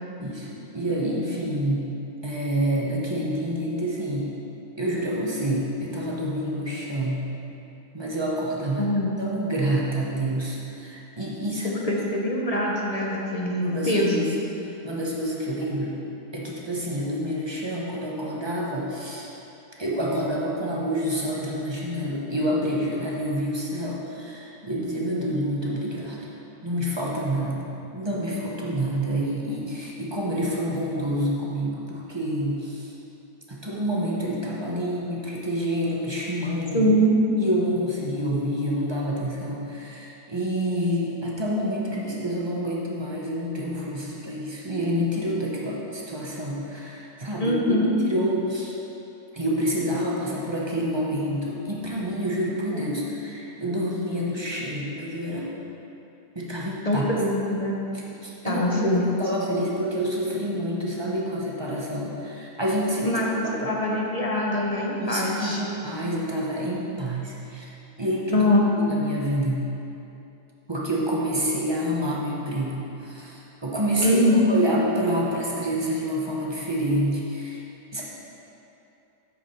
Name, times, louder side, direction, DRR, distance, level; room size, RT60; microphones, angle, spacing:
voice 1, 0.2-1.9 2.2-4.3 4.8-7.3 7.9-8.9 9.2-11.8 13.5-14.3 14.8-16.0 16.3-19.3 19.8-26.2 26.6-27.7 27.9-32.9 33.5-36.9 37.4-48.7 49.3-55.5 56.3-57.1 57.9-63.2 63.6-63.7 65.0-67.7 68.0-68.5 68.8-69.7 70.7-77.6 77.9-78.0, equal, 20° right, -4 dB, 0.9 m, -28 dB
voice 2, 8.8-9.1 11.8-14.3 36.7-37.2 47.4-48.0 56.8-57.8 58.4-59.1 63.0-65.6 68.3-68.6 74.0-74.5, equal, 35° left, -3 dB, 0.6 m, -23 dB
8.2 x 4.8 x 5.6 m, 2.9 s
omnidirectional pair, 1.6 m